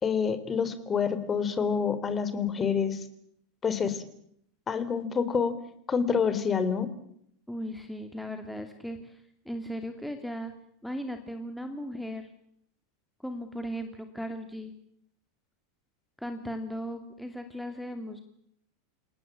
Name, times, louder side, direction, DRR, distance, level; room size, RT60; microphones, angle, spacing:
voice 1, 0.0-3.1 3.6-4.0 4.7-5.5 5.9-6.9, left 6 dB, 25° left, 12 dB, 3.7 m, -27 dB
voice 2, 7.5-10.5 10.8-12.3 13.2-14.7 16.2-18.2, equal, ahead, 6 dB, 2.7 m, -37 dB
29.0 x 19.0 x 8.7 m, 0.70 s
figure-of-eight pair, 85°, 0 cm